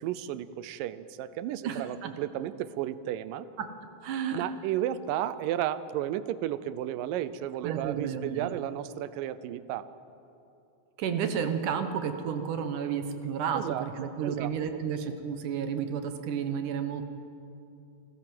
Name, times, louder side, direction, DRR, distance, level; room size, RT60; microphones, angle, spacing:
voice 1, 0.0-3.5 4.3-9.9 13.5-14.5, right 12 dB, 90° right, 15 dB, 2.4 m, -33 dB
voice 2, 1.6-2.1 3.6-3.7 4.0-4.4 7.6-8.6 11.0-17.0, right 7 dB, 75° right, 8 dB, 2.7 m, -32 dB
27.5 x 16.5 x 7.8 m, 2.8 s
omnidirectional pair, 3.8 m